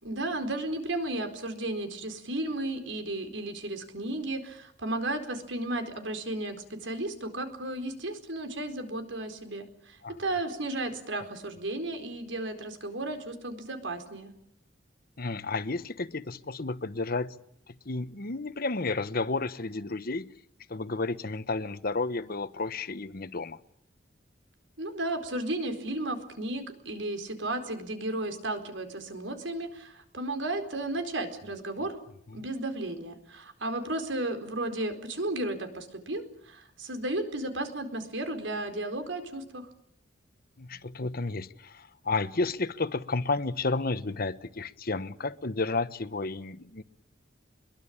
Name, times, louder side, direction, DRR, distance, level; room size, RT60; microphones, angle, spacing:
voice 1, 0.0-14.3 24.8-32.0 32.3-39.7, right 2 dB, 85° right, 4.4 m, -34 dB
voice 2, 15.2-17.4 17.7-20.3 20.7-23.6 32.3-32.4 40.6-46.8, left 3 dB, 55° left, 1.1 m, -32 dB
23.5 x 22.5 x 8.8 m
head